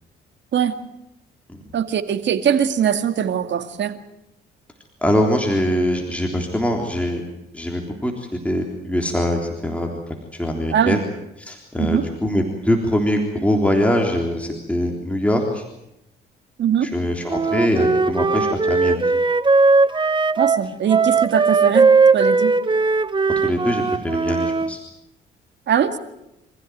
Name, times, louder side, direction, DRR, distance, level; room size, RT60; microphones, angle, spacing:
voice 1, 1.7-4.0 10.7-11.1 11.8-12.1 16.6-16.9 20.4-22.5 25.7-26.0, right 8 dB, 65° right, 9 dB, 2.2 m, -21 dB
voice 2, 5.0-7.2 7.5-10.0 10.3-11.0 11.5-15.6 16.8-19.1 23.4-24.8, equal, 5° left, 1 dB, 3.6 m, -22 dB
Wind instrument woodwind instrument, 17.3-24.7, right 4 dB, 25° right, 1.1 m, -18 dB
27.0 x 15.5 x 9.3 m, 0.85 s
cardioid pair, 90°, 20 cm